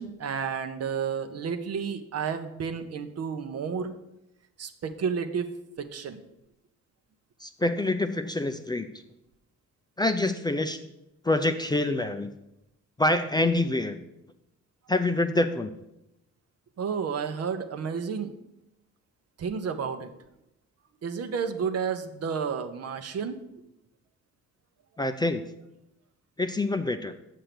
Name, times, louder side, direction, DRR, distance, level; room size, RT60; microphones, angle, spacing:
voice 1, 0.0-3.9 4.6-5.5 5.8-6.2 16.8-18.3 19.4-20.1 21.0-23.4, right 6 dB, 55° right, 9 dB, 0.8 m, -31 dB
voice 2, 7.4-8.9 10.0-10.8 11.2-12.3 13.0-14.0 14.9-15.7 25.0-25.4 26.4-27.1, left 2 dB, 15° left, 8 dB, 0.5 m, -26 dB
6.8 x 6.5 x 6.0 m, 0.88 s
cardioid pair, 90°, 30 cm